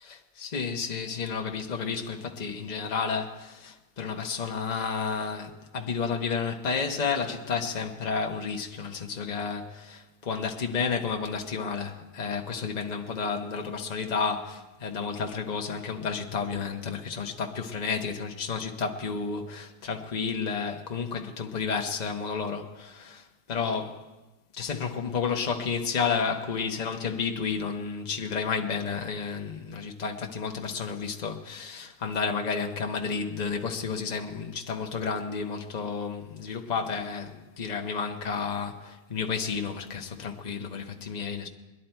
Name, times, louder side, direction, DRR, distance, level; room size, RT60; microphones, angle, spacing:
voice 1, 0.4-24.1 24.5-41.5, left 5 dB, 30° left, 0.9 m, -31 dB
22.0 x 11.0 x 4.4 m
omnidirectional pair, 1.8 m